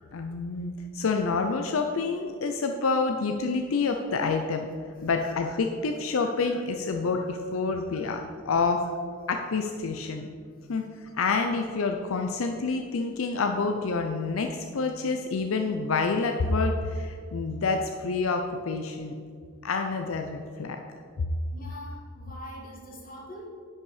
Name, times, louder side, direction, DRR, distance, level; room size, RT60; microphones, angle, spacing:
voice 1, 0.1-4.7 5.0-8.9 9.3-10.3 10.7-19.2 19.6-20.8 21.2-21.3, left 4 dB, 85° left, 5 dB, 0.5 m, -28 dB
voice 2, 21.5-23.5, equal, 45° left, -3 dB, 2.1 m, -43 dB
10.0 x 5.5 x 4.9 m, 2.2 s
head